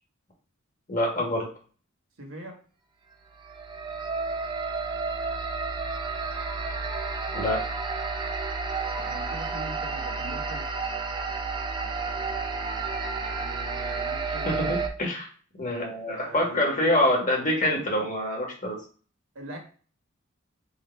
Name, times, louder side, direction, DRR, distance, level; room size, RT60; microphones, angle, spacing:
voice 1, 0.9-1.5 7.3-7.6 14.3-15.3 15.6-18.8, left 1 dB, 40° left, -1 dB, 1.5 m, -26 dB
voice 2, 2.2-2.6 9.0-10.6 11.8-14.8 16.1-16.9 19.3-19.6, right 1 dB, 80° right, 2 dB, 1.3 m, -43 dB
sound 1, 3.3-14.9, right 4 dB, 20° right, 0.5 m, -31 dB
4.8 x 2.5 x 4.5 m, 0.41 s
head